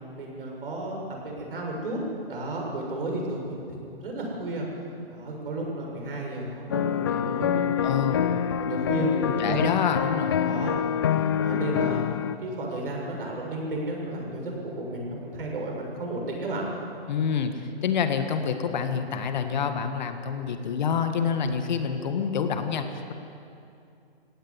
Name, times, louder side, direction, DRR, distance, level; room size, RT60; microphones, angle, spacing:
voice 1, 0.1-1.0 1.2-2.0 2.3-4.7 5.1-9.6 10.4-10.8 11.4-12.1 12.4-16.6, right 1 dB, 60° right, -1 dB, 7.1 m, -32 dB
sound 1, 6.7-12.4, left 9 dB, 25° left, 0.5 m, -26 dB
voice 2, 7.8-8.5 9.2-10.4 17.1-17.5 17.8-23.1, left 6 dB, 45° left, 7 dB, 1.7 m, -27 dB
17.5 x 17.0 x 9.9 m, 2.6 s
hypercardioid pair, 155°, 31 cm